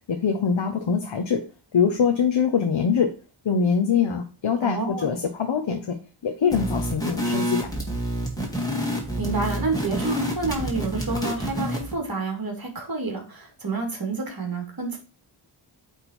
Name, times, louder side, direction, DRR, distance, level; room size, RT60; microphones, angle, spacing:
voice 1, 0.1-1.4 1.7-3.1 3.4-6.0 6.2-7.7, left 6 dB, 70° left, 5 dB, 1.0 m, -23 dB
voice 2, 4.6-5.1 9.2-15.0, right 3 dB, 50° right, 2 dB, 2.3 m, -29 dB
sound 1, 6.5-12.0, equal, 10° left, 2.2 m, -28 dB
8.9 x 3.7 x 4.3 m, 0.34 s
wide cardioid pair, 100°, 47 cm